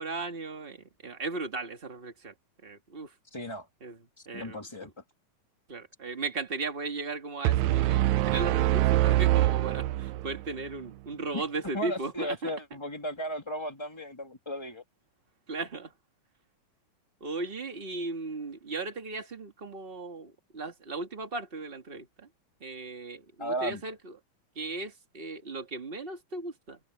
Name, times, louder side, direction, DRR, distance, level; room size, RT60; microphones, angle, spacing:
voice 1, 0.0-2.3 2.6-3.1 3.8-4.0 4.2-4.9 5.7-12.5 15.5-15.9 17.2-22.3 22.6-24.1 24.5-26.8, right 3 dB, 25° right, 1.4 m, -37 dB
voice 2, 3.3-3.7 4.2-4.9 11.3-11.4 11.7-14.8 23.4-23.8, equal, 10° left, 1.5 m, -35 dB
sound 1, 7.4-10.5, right 15 dB, 80° right, 1.7 m, -24 dB
open air
omnidirectional pair, 3.7 m